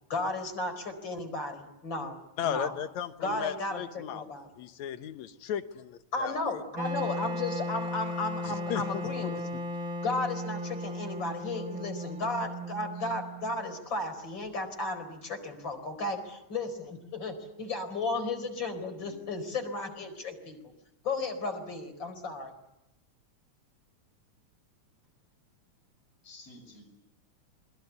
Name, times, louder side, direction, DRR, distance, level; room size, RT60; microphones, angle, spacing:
voice 1, 0.1-2.2 2.4-2.7 3.2-4.5 6.1-9.6 10.0-20.6 21.0-22.5, left 2 dB, 40° left, 8 dB, 5.1 m, -34 dB
voice 2, 2.4-4.3 4.6-6.6 8.4-8.8 9.2-9.3, left 9 dB, 75° left, 9 dB, 2.5 m, -35 dB
Wind instrument woodwind instrument, 6.7-13.7, left 1 dB, 35° right, 1.5 m, -36 dB
voice 3, 12.0-12.4 12.9-13.1 18.8-19.7 26.2-26.8, equal, 55° left, 3 dB, 8.1 m, -54 dB
27.5 x 22.0 x 8.3 m, 0.91 s
omnidirectional pair, 3.4 m